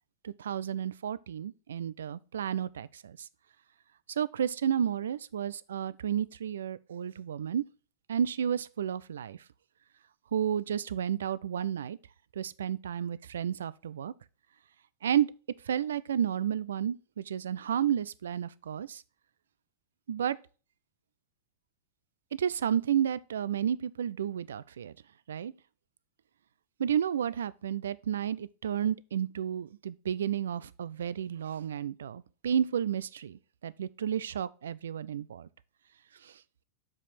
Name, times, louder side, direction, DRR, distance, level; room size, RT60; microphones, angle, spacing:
voice 1, 0.2-3.2 4.2-7.6 8.1-9.4 10.3-12.0 12.4-14.1 15.0-15.3 15.7-19.0 20.1-20.4 22.3-24.9 25.3-25.5 26.8-35.5 36.2-36.3, right 9 dB, 65° right, 0.4 m, -31 dB
7.4 x 5.0 x 4.2 m
figure-of-eight pair, 90°, 0 cm